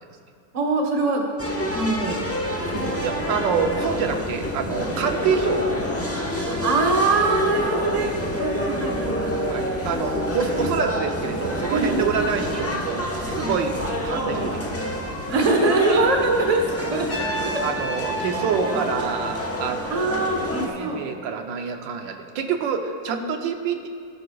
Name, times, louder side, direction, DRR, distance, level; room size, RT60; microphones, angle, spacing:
voice 1, 0.5-1.3 1.7-2.3 2.7-3.2 6.3-9.3 10.4-10.5 11.7-12.1 13.4-13.6 14.2-14.5 15.3-17.6 19.9-21.0 23.1-23.3, right 3 dB, 25° right, 2 dB, 0.9 m, -23 dB
sound 1, 1.4-20.7, equal, 15° left, 0.6 m, -28 dB
voice 2, 3.0-5.8 9.5-14.8 15.3-15.4 17.6-20.3 20.6-23.9, right 6 dB, 80° right, 5 dB, 1.4 m, -27 dB
Trumpet, 17.1-20.1, right 1 dB, 55° left, 3.0 m, -32 dB
17.0 x 11.0 x 2.3 m, 2.3 s
omnidirectional pair, 2.0 m